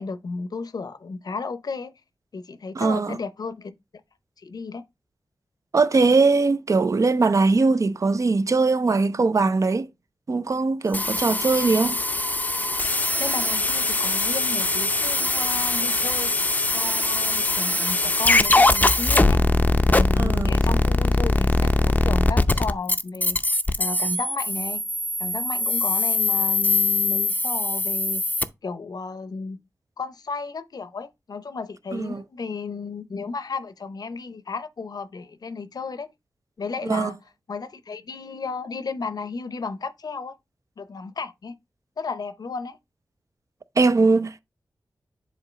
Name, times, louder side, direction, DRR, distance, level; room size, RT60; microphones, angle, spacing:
voice 1, 0.0-1.9 2.3-3.7 4.4-4.8 13.2-16.3 16.7-19.4 19.9-23.4 23.8-24.8 25.2-28.2 28.6-29.6 30.0-36.1 36.6-37.2 37.5-40.4 40.8-41.5 42.0-42.8, left 4 dB, 60° left, 0.7 m, -33 dB
voice 2, 2.7-3.2 5.7-9.9 10.3-12.0 20.2-20.5 31.9-32.2 36.8-37.1 43.8-44.4, right 3 dB, 45° right, 0.6 m, -21 dB
sound 1, 10.9-28.4, left 2 dB, 20° left, 0.5 m, -22 dB
7.6 x 2.9 x 5.0 m
wide cardioid pair, 75°, 7 cm